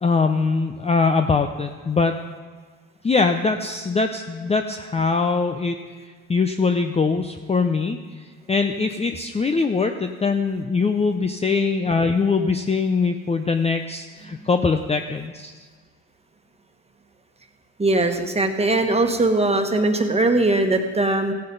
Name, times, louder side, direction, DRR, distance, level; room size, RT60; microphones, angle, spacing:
voice 1, 0.0-2.1 3.0-5.8 6.3-8.0 8.5-15.5, left 4 dB, 20° left, 6 dB, 0.6 m, -22 dB
voice 2, 17.8-21.3, right 2 dB, 15° right, 5 dB, 1.4 m, -20 dB
15.5 x 9.5 x 4.0 m, 1.5 s
supercardioid pair, 80°, 35 cm